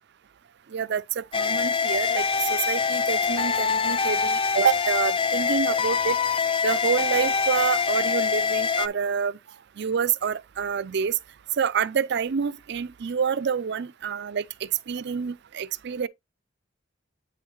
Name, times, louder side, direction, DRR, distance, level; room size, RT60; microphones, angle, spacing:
voice 1, 0.7-6.2 6.6-9.4 9.8-11.2 11.6-16.1, right 6 dB, 60° right, 0.5 m, -27 dB
sound 1, 1.3-8.9, left 5 dB, 25° left, 0.4 m, -24 dB
8.6 x 5.5 x 3.0 m
head